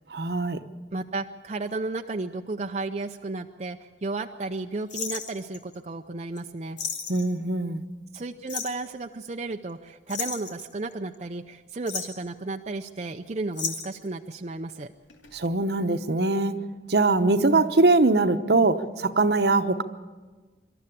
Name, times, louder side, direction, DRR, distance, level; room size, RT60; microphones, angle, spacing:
voice 1, 0.1-0.6 7.1-7.8 15.3-16.6 16.9-19.8, right 3 dB, 65° right, 10 dB, 0.9 m, -22 dB
voice 2, 0.9-6.8 8.1-14.9, right 3 dB, 35° right, 5 dB, 0.5 m, -33 dB
sound 1, 4.9-5.7 6.4-6.5 6.8-7.3 8.5-8.8 10.1-11.1 11.7-12.2 13.5-14.1 15.1-15.5 15.7-15.8, left 6 dB, 90° left, 2.5 m, -33 dB
26.0 x 13.0 x 8.6 m, 1.3 s
head